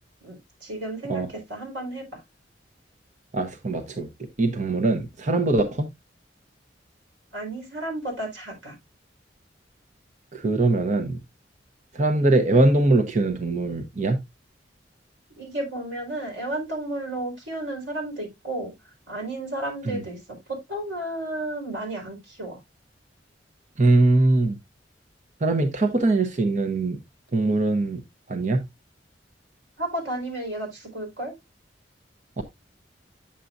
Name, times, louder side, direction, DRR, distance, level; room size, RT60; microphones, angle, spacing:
voice 1, 0.2-2.2 7.3-8.8 15.4-18.7 19.1-22.6 29.8-31.3, right 1 dB, 85° right, 4.4 m, -32 dB
voice 2, 3.3-5.9 10.3-11.2 11.9-14.2 19.8-20.0 23.8-24.6 25.4-27.0 27.3-28.0 28.3-28.7, right 2 dB, 40° right, 0.8 m, -22 dB
8.9 x 7.1 x 2.5 m
head